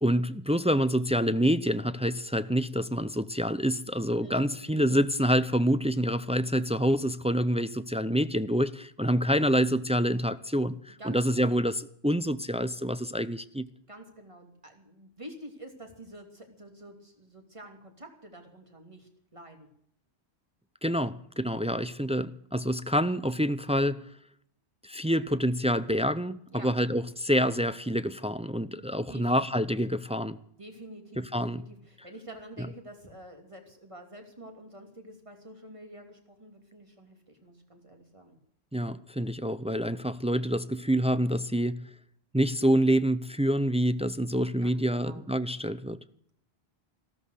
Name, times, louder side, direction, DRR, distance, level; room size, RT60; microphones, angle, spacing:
voice 1, 0.0-13.7 20.8-24.1 24.8-30.4 31.2-31.6 38.7-41.9 42.3-46.0, equal, 10° right, 0.3 m, -27 dB
voice 2, 4.2-4.6 11.0-11.5 13.9-19.7 26.5-26.7 28.8-29.8 30.6-38.4 44.6-45.2, right 1 dB, 30° right, 2.9 m, -48 dB
14.5 x 13.5 x 6.4 m
omnidirectional pair, 1.1 m